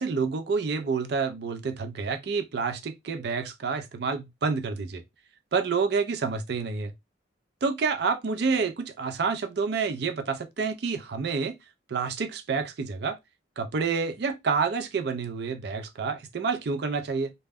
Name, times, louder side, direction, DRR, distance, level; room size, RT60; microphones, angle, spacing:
voice 1, 0.0-5.0 5.5-6.9 7.6-11.5 11.9-13.2 13.6-17.3, right 5 dB, 55° right, 0.4 m, -28 dB
2.2 x 2.0 x 3.4 m
head